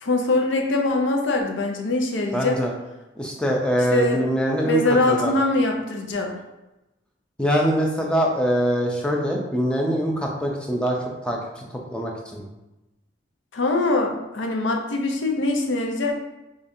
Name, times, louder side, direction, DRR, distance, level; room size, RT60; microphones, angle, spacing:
voice 1, 0.0-2.6 3.9-4.2 4.6-6.4 13.5-16.1, left 2 dB, 80° left, 2 dB, 0.6 m, -23 dB
voice 2, 2.3-2.7 3.2-4.8 5.1-5.3 7.4-11.0 11.2-12.4, equal, 5° left, -1 dB, 0.4 m, -23 dB
5.0 x 2.4 x 2.6 m, 1.0 s
head